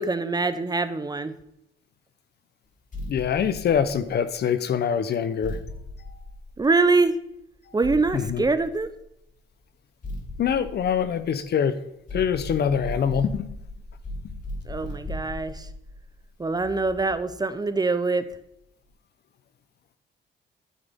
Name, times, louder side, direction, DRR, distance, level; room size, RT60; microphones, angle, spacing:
voice 1, 0.0-1.4 6.6-7.2 7.7-8.9 14.7-15.7 16.4-18.3, right 3 dB, 20° right, 12 dB, 0.6 m, -24 dB
sound 1, 2.9-4.4 5.4-7.0 7.8-9.2 10.0-11.6 12.1-17.3, left 1 dB, 40° left, 2.7 m, -38 dB
voice 2, 3.1-5.6 8.1-8.5 10.4-11.8 12.1-13.5 14.2-14.3, left 7 dB, 55° left, 13 dB, 0.7 m, -24 dB
9.0 x 7.9 x 3.6 m, 0.78 s
cardioid pair, 90°, 20 cm